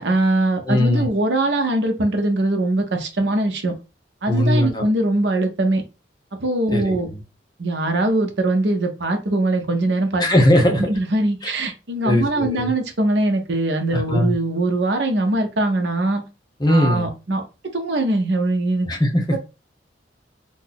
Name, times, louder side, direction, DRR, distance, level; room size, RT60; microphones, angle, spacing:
voice 1, 0.0-3.7 4.2-5.8 6.4-7.1 7.6-10.2 10.7-16.2 16.7-17.4 17.7-18.9, right 2 dB, 70° right, 5 dB, 0.8 m, -21 dB
voice 2, 0.7-1.1 4.3-4.8 6.7-7.2 10.2-10.9 11.4-11.5 12.0-12.7 13.9-14.3 16.6-17.1 18.8-19.4, left 1 dB, 20° left, 1 dB, 0.8 m, -19 dB
2.8 x 2.5 x 3.9 m, 0.28 s
head